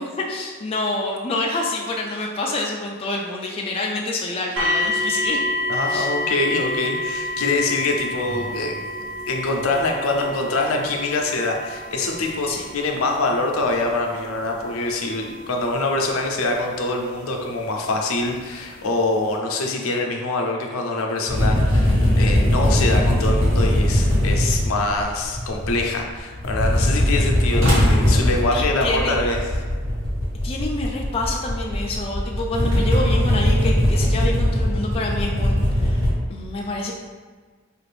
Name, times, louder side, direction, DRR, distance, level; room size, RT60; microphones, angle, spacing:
voice 1, 0.0-5.4 5.9-6.1 12.5-12.6 28.5-29.2 30.4-36.9, left 2 dB, 25° left, -1 dB, 0.3 m, -27 dB
sound 1, 4.6-17.4 18.3-18.4 19.0-19.1, left 1 dB, 90° right, 1.0 m, -29 dB
voice 2, 5.7-8.8 9.3-29.4, left 2 dB, 80° left, 2 dB, 0.6 m, -24 dB
sound 2, 21.3-26.0 26.3-36.1, equal, 70° right, 1.3 m, -20 dB
4.7 x 2.5 x 3.3 m, 1.5 s
head